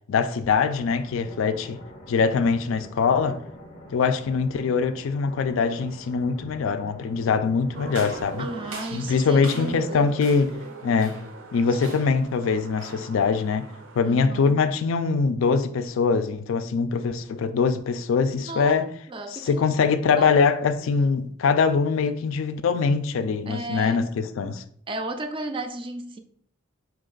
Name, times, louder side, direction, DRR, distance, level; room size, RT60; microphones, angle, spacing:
voice 1, 0.1-1.8 2.1-3.4 3.9-8.5 8.9-10.5 10.8-11.2 11.5-18.9 19.3-24.6, left 5 dB, 70° left, 0.3 m, -23 dB
sound 1, 0.7-8.7, equal, 25° left, 0.6 m, -45 dB
sound 2, 7.7-14.0, right 3 dB, 65° right, 0.6 m, -41 dB
sound 3, 7.9-9.9 10.2-10.6 11.0-11.4 11.8-12.2 12.8-13.1, right 2 dB, 90° right, 1.1 m, -41 dB
voice 2, 8.4-10.1 14.0-14.6 18.5-19.7 20.2-20.4 23.5-24.1 24.9-26.2, right 2 dB, 25° right, 0.3 m, -34 dB
4.2 x 2.9 x 3.8 m
head